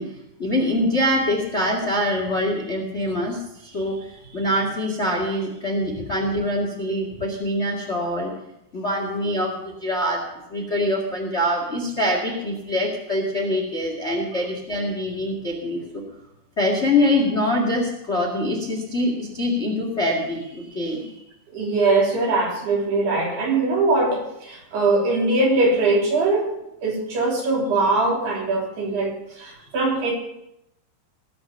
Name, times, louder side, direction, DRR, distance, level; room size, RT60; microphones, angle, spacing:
voice 1, 0.0-8.3 8.7-10.2 10.5-16.0 16.6-21.2, left 1 dB, 55° left, 1 dB, 0.7 m, -24 dB
voice 2, 21.5-30.1, right 3 dB, 60° right, -2 dB, 5.2 m, -21 dB
18.5 x 7.1 x 6.8 m, 0.86 s
omnidirectional pair, 5.3 m